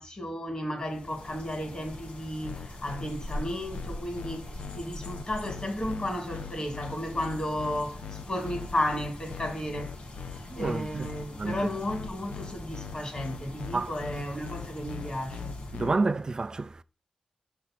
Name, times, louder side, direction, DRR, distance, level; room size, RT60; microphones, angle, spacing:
voice 1, 0.0-15.5, left 1 dB, 35° left, 2.4 m, -34 dB
sound 1, 0.8-15.9, left 1 dB, 70° left, 1.6 m, -43 dB
sound 2, 2.4-16.0, left 8 dB, 85° left, 0.5 m, -40 dB
voice 2, 10.5-11.1 11.4-11.7 13.7-14.0 15.7-16.8, right 3 dB, 30° right, 0.4 m, -29 dB
6.8 x 3.7 x 6.1 m
cardioid pair, 85°, 2 cm